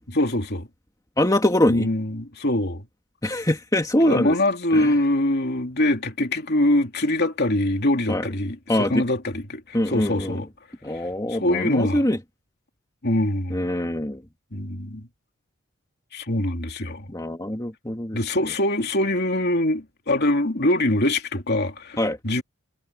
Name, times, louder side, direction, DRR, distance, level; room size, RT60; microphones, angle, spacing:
voice 1, 0.1-0.7 1.7-2.8 4.0-10.5 11.3-12.1 13.0-13.6 14.5-15.1 16.1-17.1 18.1-22.4, left 1 dB, 50° left, 2.9 m, -23 dB
voice 2, 1.2-1.9 3.2-4.4 4.7-4.9 8.1-8.3 8.7-9.1 9.7-10.4 10.8-12.2 13.5-14.2 17.1-18.2 22.0-22.2, left 1 dB, 15° left, 2.3 m, -23 dB
head